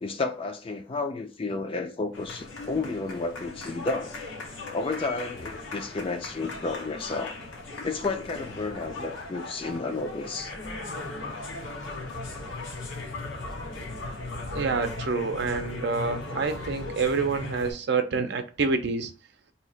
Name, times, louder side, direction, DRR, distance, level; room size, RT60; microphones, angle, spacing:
voice 1, 0.0-4.1 4.7-7.3 7.8-10.5, left 3 dB, 30° left, 0.4 m, -31 dB
sound 1, 2.1-17.7, left 2 dB, 90° left, 0.8 m, -38 dB
voice 2, 14.5-19.1, right 4 dB, 65° right, 0.5 m, -27 dB
2.8 x 2.4 x 4.2 m
head